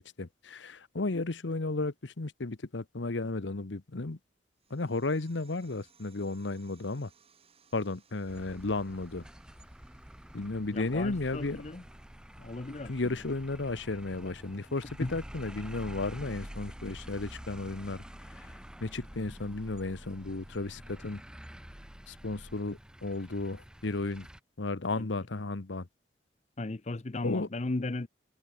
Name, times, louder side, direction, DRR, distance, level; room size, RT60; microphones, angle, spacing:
voice 1, 0.0-4.2 4.7-7.1 7.7-9.2 10.3-11.6 12.9-18.0 18.3-18.5 18.8-21.2 22.1-24.3 24.6-25.9 27.2-27.5, left 2 dB, 75° left, 1.0 m, -34 dB
sound 1, 4.6-15.6, right 6 dB, 30° right, 4.1 m, -67 dB
sound 2, 8.3-24.4, equal, 5° right, 0.9 m, -48 dB
voice 2, 10.7-11.8 12.4-12.9 15.0-15.2 25.0-25.1 26.6-28.1, left 2 dB, 35° left, 0.7 m, -36 dB
head